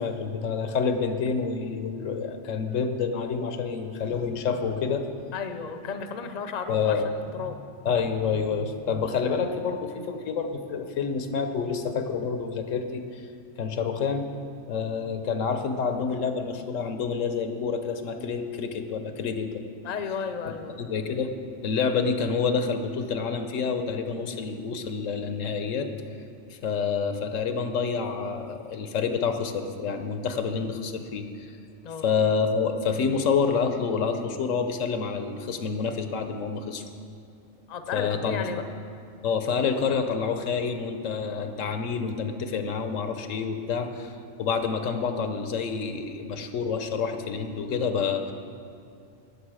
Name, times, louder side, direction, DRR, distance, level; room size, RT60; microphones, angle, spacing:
voice 1, 0.0-5.0 6.7-7.1 7.4-7.5 7.8-13.0 13.6-14.2 14.7-19.6 20.5-21.3 21.6-25.9 26.5-31.5 32.0-36.8 37.9-38.6 39.2-44.1 44.4-48.3, left 5 dB, 80° left, 7 dB, 1.1 m, -28 dB
voice 2, 5.3-7.6 19.8-20.9 31.8-32.1 37.7-38.6, left 6 dB, 40° left, 8 dB, 0.7 m, -34 dB
18.5 x 6.8 x 4.9 m, 2.5 s
omnidirectional pair, 1.3 m